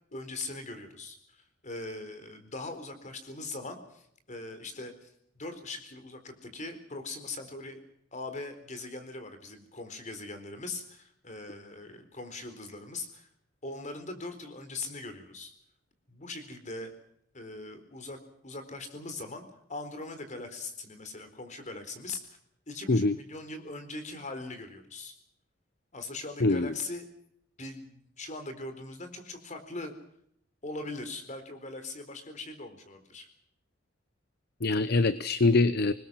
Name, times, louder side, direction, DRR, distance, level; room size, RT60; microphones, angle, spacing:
voice 1, 0.1-7.8 8.1-13.3 13.6-15.6 16.1-16.9 17.3-18.2 18.4-22.4 22.7-25.2 25.9-27.1 27.6-29.9 30.6-33.3, left 2 dB, 40° left, 9 dB, 4.2 m, -41 dB
voice 2, 26.4-26.7 34.6-35.9, left 3 dB, 55° left, 15 dB, 0.8 m, -24 dB
26.0 x 21.0 x 6.3 m, 0.71 s
head